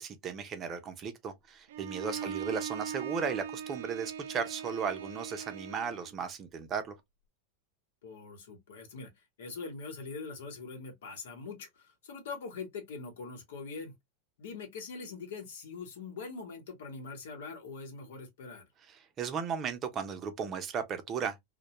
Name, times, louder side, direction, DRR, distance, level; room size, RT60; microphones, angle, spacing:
voice 1, 0.0-6.9 19.2-21.4, right 6 dB, 35° right, 0.6 m, -35 dB
Bowed string instrument, 1.7-6.1, right 8 dB, 80° right, 0.4 m, -40 dB
voice 2, 2.0-2.4 8.0-13.9 14.4-18.6, left 4 dB, 80° left, 1.1 m, -43 dB
2.2 x 2.1 x 2.8 m
hypercardioid pair, 115°, 0 cm